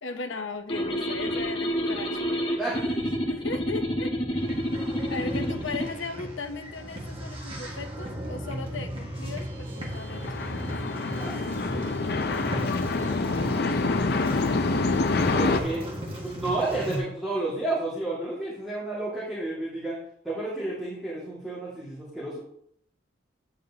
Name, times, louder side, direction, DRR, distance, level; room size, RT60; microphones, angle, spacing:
voice 1, 0.0-4.1 5.1-10.7 12.8-14.6, left 4 dB, 90° left, 6 dB, 0.8 m, -38 dB
sound 1, 0.7-5.9, equal, 30° left, 1.4 m, -29 dB
voice 2, 2.6-3.0 11.2-11.4 15.2-20.0 20.2-22.4, right 2 dB, ahead, -10 dB, 2.1 m, -31 dB
sound 2, 4.4-17.0, equal, 30° right, 1.7 m, -36 dB
sound 3, 9.9-15.6, left 3 dB, 55° left, 0.6 m, -26 dB
9.5 x 7.2 x 2.8 m, 0.69 s
head